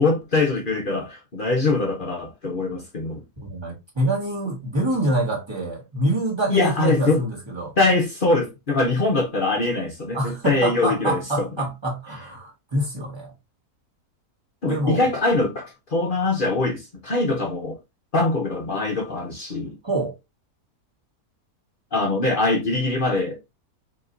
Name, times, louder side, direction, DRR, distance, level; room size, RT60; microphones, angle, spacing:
voice 1, 0.0-3.2 6.5-7.2 7.8-11.5 14.6-17.8 18.1-19.8 21.9-23.4, left 3 dB, 40° left, 0.9 m, -23 dB
voice 2, 3.4-7.8 10.1-13.3 14.6-15.1 19.8-20.2, right 1 dB, 15° right, 1.6 m, -26 dB
4.6 x 3.3 x 2.6 m
omnidirectional pair, 1.6 m